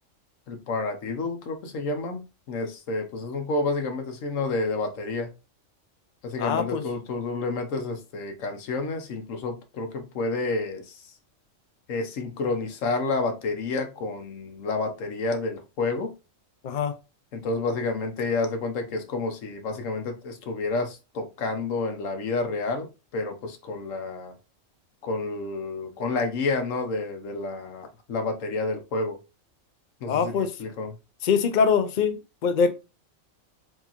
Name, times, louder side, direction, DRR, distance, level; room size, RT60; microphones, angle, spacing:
voice 1, 0.5-5.3 6.2-11.0 11.9-16.1 17.3-24.3 25.0-29.2 30.0-30.9, left 3 dB, 75° left, 1.2 m, -30 dB
voice 2, 6.4-6.8 16.6-16.9 30.1-30.5 31.2-32.7, left 6 dB, 55° left, 0.5 m, -23 dB
4.6 x 2.7 x 2.9 m
omnidirectional pair, 1.4 m